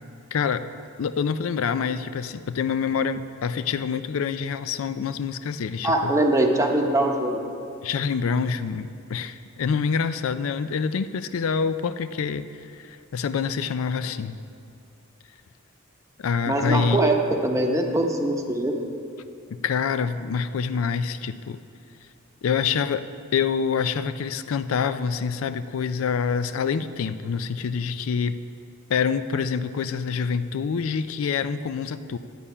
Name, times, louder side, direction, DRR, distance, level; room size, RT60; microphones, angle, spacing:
voice 1, 0.3-0.6 1.0-6.1 7.8-14.4 16.2-17.0 19.5-21.6 22.4-28.4 28.9-32.2, left 6 dB, 75° left, 12 dB, 0.4 m, -26 dB
voice 2, 5.8-7.4 16.5-18.7, right 1 dB, 15° right, 3 dB, 0.8 m, -22 dB
11.0 x 8.5 x 5.5 m, 2.5 s
head